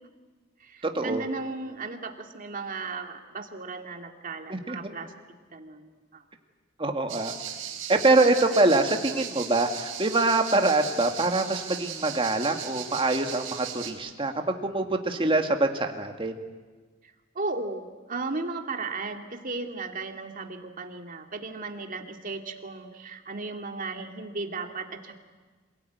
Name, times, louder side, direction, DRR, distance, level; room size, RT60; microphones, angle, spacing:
voice 1, 0.6-5.1 5.5-6.2 17.0-25.2, right 3 dB, 45° right, 4 dB, 2.3 m, -35 dB
voice 2, 6.8-7.3 7.9-16.4, right 2 dB, 25° right, 5 dB, 2.0 m, -24 dB
sound 1, 7.1-13.9, right 9 dB, 80° right, 3.8 m, -37 dB
27.0 x 18.0 x 9.4 m, 1.4 s
head